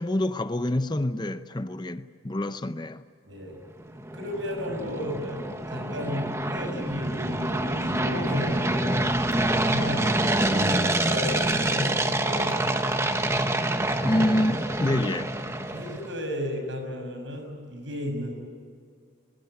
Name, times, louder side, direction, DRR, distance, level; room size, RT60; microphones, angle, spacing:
voice 1, 0.0-3.0 14.0-15.3, left 1 dB, 20° left, 0.6 m, -27 dB
voice 2, 3.2-3.6 4.1-5.4 5.7-9.0 9.6-12.6 15.7-18.3, left 1 dB, 70° right, 6.3 m, -34 dB
sound 1, 3.8-16.1, right 1 dB, 15° right, 1.2 m, -26 dB
22.0 x 22.0 x 9.2 m
head